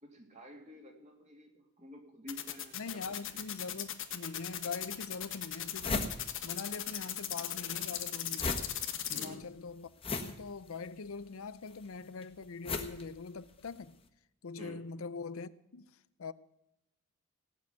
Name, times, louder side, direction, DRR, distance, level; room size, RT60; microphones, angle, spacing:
voice 1, 0.0-3.0 3.3-3.4 9.1-9.5 14.6-14.9, equal, 35° right, 2.7 m, -50 dB
sound 1, 2.3-9.3, left 12 dB, 65° left, 1.4 m, -37 dB
voice 2, 2.7-6.1 6.4-8.7 9.1-9.9 10.2-13.9 14.4-16.3, left 4 dB, 80° left, 0.6 m, -43 dB
sound 2, 4.6-4.7 5.2-5.3 5.5-7.0 7.3-13.9, left 3 dB, 25° left, 1.4 m, -38 dB
17.0 x 6.5 x 9.5 m
head